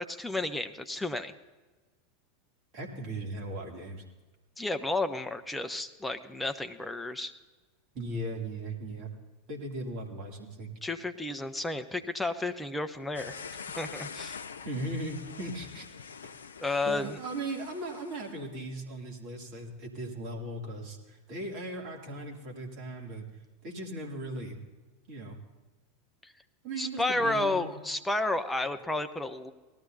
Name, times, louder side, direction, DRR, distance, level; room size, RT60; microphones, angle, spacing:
voice 1, 0.0-1.3 4.6-7.3 10.8-13.4 13.8-14.4 16.6-17.2 26.8-29.5, left 2 dB, 5° left, 7 dB, 0.7 m, -32 dB
voice 2, 2.7-4.0 7.9-9.1 9.5-10.7 14.6-15.9 16.2-16.3 16.8-23.3 23.6-24.6 25.1-25.4 26.6-27.8, right 1 dB, 45° right, 0 dB, 2.6 m, -38 dB
sound 1, 13.2-18.4, left 6 dB, 75° left, 0.4 m, -44 dB
19.0 x 12.5 x 2.7 m, 1.2 s
figure-of-eight pair, 85°, 0 cm